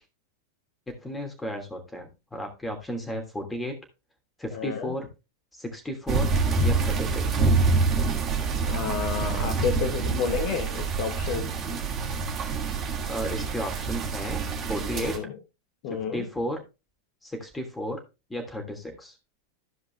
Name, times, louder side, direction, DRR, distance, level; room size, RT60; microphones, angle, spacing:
voice 1, 0.9-3.8 4.4-5.1 5.6-6.3 6.6-7.5 13.1-15.2 15.9-16.6 17.2-18.0 18.3-19.1, equal, 10° left, 4 dB, 3.0 m, -34 dB
voice 2, 4.5-4.9 8.7-11.5 14.9-15.4 15.8-16.3, left 7 dB, 45° left, 6 dB, 1.3 m, -30 dB
sound 1, 6.1-15.2, right 4 dB, 30° right, 2.8 m, -26 dB
15.0 x 5.2 x 3.4 m, 0.28 s
figure-of-eight pair, 90°, 0 cm